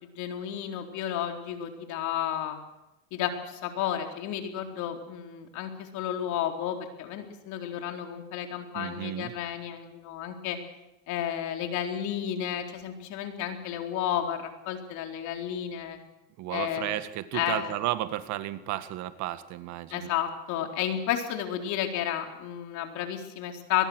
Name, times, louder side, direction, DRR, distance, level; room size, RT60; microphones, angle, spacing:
voice 1, 0.0-2.6 3.1-10.6 11.1-16.0 16.5-17.0 17.3-17.7 19.9-23.9, left 10 dB, 60° left, 4 dB, 4.1 m, -32 dB
voice 2, 8.7-9.3 16.4-20.1, right 14 dB, 60° right, 12 dB, 1.9 m, -33 dB
23.0 x 20.5 x 6.5 m, 0.97 s
supercardioid pair, 105°, 32 cm